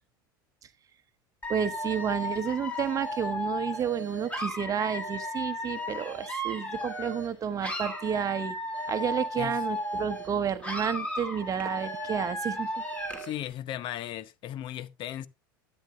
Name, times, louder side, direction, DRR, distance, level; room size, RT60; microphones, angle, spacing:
Dog / Alarm, 1.4-7.3 7.6-10.3 10.6-13.3, equal, 10° left, 3.3 m, -35 dB
voice 1, 1.5-8.5 8.9-12.7, right 8 dB, 30° right, 1.1 m, -31 dB
voice 2, 13.2-15.3, left 12 dB, 45° left, 0.8 m, -36 dB
13.0 x 8.9 x 2.4 m
hypercardioid pair, 85°, 11 cm